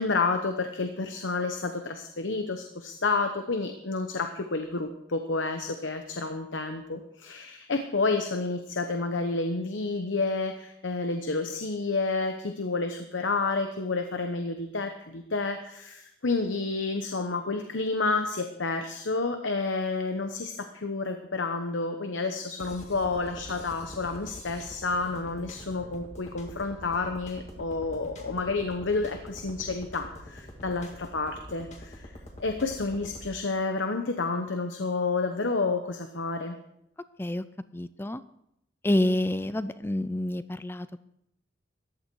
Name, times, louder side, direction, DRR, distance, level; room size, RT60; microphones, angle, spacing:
voice 1, 0.0-32.1 32.4-36.6, left 3 dB, 80° left, 6 dB, 1.0 m, -30 dB
sound 1, 22.6-33.3, left 1 dB, 35° left, 1.9 m, -45 dB
voice 2, 37.7-38.2 38.8-41.0, left 1 dB, 10° left, 14 dB, 0.4 m, -28 dB
14.5 x 11.5 x 4.7 m, 0.80 s
head